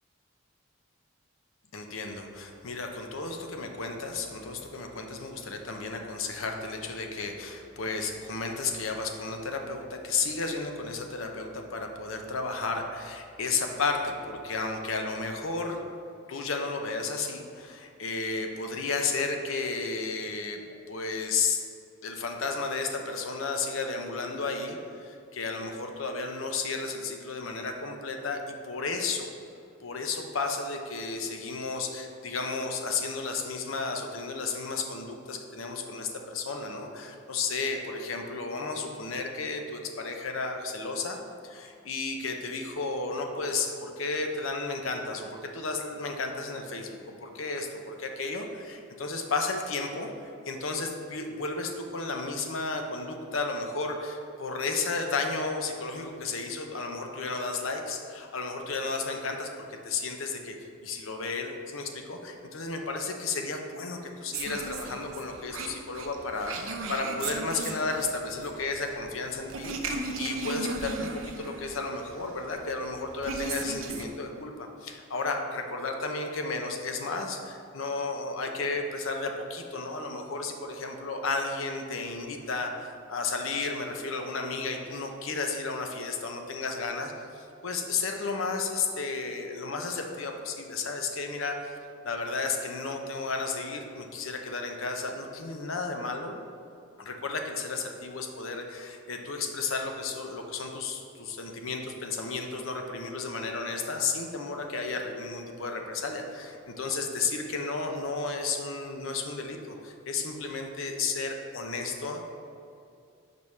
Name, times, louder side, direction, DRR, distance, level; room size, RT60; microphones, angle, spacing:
voice 1, 1.7-15.8 16.3-20.6 20.9-21.6 22.0-29.3 29.8-46.9 47.2-50.1 50.5-60.6 60.8-91.8 92.0-96.3 97.0-112.2, left 4 dB, 80° left, 4 dB, 0.7 m, -33 dB
sound 1, 64.3-74.1, right 3 dB, 85° right, 0.7 m, -37 dB
5.3 x 4.7 x 5.4 m, 2.4 s
head